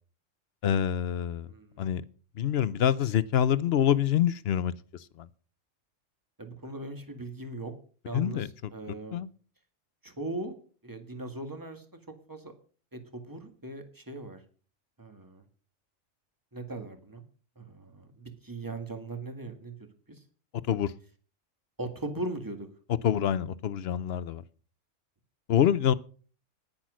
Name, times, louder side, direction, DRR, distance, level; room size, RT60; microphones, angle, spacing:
voice 1, 0.6-1.5 1.8-2.0 2.4-5.3 8.1-8.5 9.1-9.3 20.7-20.9 23.0-24.4 25.5-25.9, left 9 dB, 55° left, 0.8 m, -26 dB
voice 2, 1.5-1.9 6.4-7.7 8.1-9.2 10.0-10.5 10.8-11.9 12.3-12.5 12.9-14.4 15.0-15.4 16.5-17.2 17.6-19.8 20.1-20.2 21.8-22.7, right 2 dB, 15° right, 1.8 m, -39 dB
10.5 x 10.0 x 6.3 m
omnidirectional pair, 1.4 m